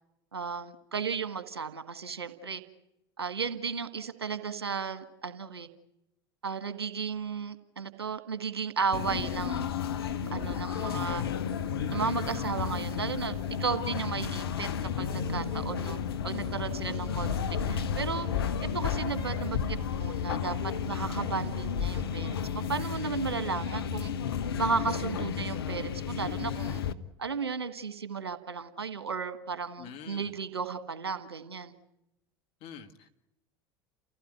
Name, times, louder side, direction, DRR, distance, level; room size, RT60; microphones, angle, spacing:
voice 1, 0.3-2.6 3.2-5.7 6.4-9.7 10.2-11.2 11.9-17.4 17.6-24.1 24.6-26.8 27.2-31.7, right 5 dB, 75° right, 10 dB, 1.7 m, -34 dB
sound 1, 8.9-26.9, left 7 dB, 70° left, 1.1 m, -32 dB
voice 2, 13.6-14.0 29.8-30.3 32.6-33.1, left 8 dB, 45° left, 5 dB, 2.1 m, -46 dB
30.0 x 16.0 x 9.4 m, 0.89 s
figure-of-eight pair, 75°, 13 cm